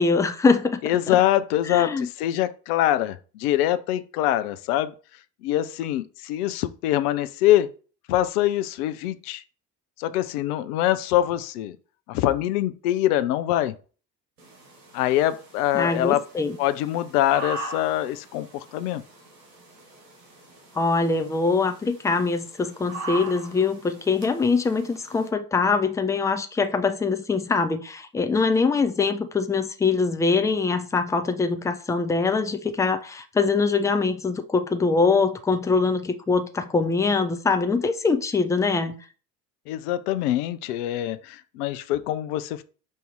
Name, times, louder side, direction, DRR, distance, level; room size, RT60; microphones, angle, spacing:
voice 1, 0.0-0.8 1.1-1.2 1.7-2.1 15.7-16.6 20.7-39.0, left 4 dB, 5° left, 0.3 m, -23 dB
voice 2, 0.8-4.9 5.4-7.7 8.1-9.4 10.0-11.8 12.1-13.8 14.9-16.2 16.6-19.0 39.7-42.6, left 13 dB, 65° left, 0.6 m, -24 dB
sound 1, 14.4-25.3, right 1 dB, 85° right, 1.4 m, -41 dB
5.3 x 2.7 x 3.6 m
figure-of-eight pair, 60°, 49 cm